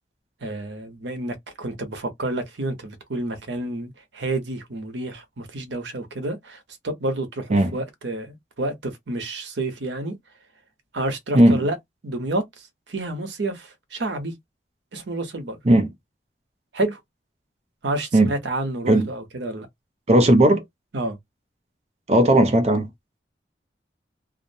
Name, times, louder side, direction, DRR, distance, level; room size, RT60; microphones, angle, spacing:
voice 1, 0.4-10.2 10.9-11.8 12.0-14.3 14.9-15.6 16.7-17.0 17.8-19.7 20.9-21.2, right 2 dB, 85° right, 0.8 m, -29 dB
voice 2, 20.1-20.6 22.1-22.9, right 1 dB, 35° right, 0.4 m, -16 dB
2.5 x 2.0 x 2.6 m
head